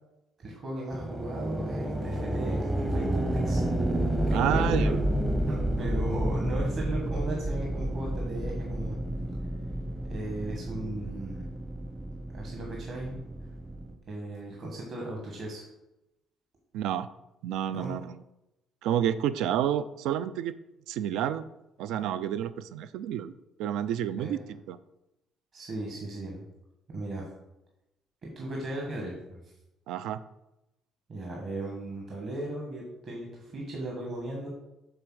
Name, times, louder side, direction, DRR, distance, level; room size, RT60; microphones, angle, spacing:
voice 1, 0.4-3.6 4.3-5.0 5.5-9.0 10.1-11.5 12.3-13.2 14.1-15.6 17.7-17.9 24.2-24.4 25.5-26.4 26.9-27.2 28.2-29.4 31.1-34.5, right 1 dB, 35° right, -2 dB, 1.4 m, -36 dB
sound 1, 0.9-13.9, right 1 dB, 15° right, 0.8 m, -30 dB
voice 2, 4.3-4.9 16.7-17.1 17.4-18.2 18.8-20.5 20.9-21.4 21.8-23.3 23.6-24.4 24.7-24.8 29.9-30.2, right 10 dB, 80° right, 14 dB, 0.4 m, -29 dB
7.8 x 3.9 x 6.3 m, 0.91 s
cardioid pair, 180°, 0 cm